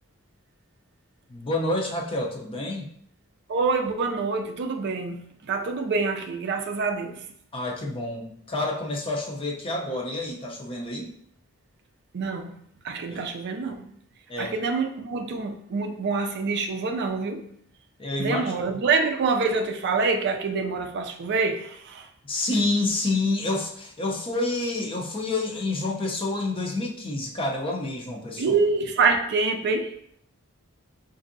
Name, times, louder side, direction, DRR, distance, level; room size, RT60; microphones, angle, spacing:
voice 1, 1.3-2.9 7.5-11.1 13.1-13.2 14.3-14.5 18.0-18.5 22.2-28.5, left 2 dB, 25° left, 0 dB, 0.6 m, -28 dB
voice 2, 3.5-7.2 12.1-12.5 12.8-13.9 14.4-17.5 18.2-22.1 28.4-29.9, right 4 dB, 55° right, 5 dB, 0.4 m, -26 dB
5.2 x 2.6 x 2.6 m, 0.66 s
head